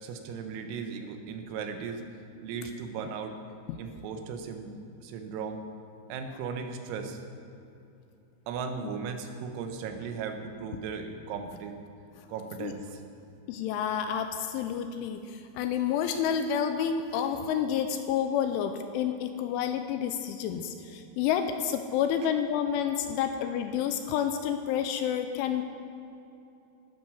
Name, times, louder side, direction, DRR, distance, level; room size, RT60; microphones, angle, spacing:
voice 1, 0.0-2.0 2.4-3.4 3.8-5.6 6.1-7.2 8.5-11.7 12.3-13.0, right 6 dB, 85° right, 6 dB, 3.8 m, -37 dB
voice 2, 13.5-15.2 15.6-25.6, left 8 dB, 80° left, 7 dB, 2.9 m, -29 dB
13.5 x 12.0 x 6.4 m, 2.8 s
omnidirectional pair, 5.9 m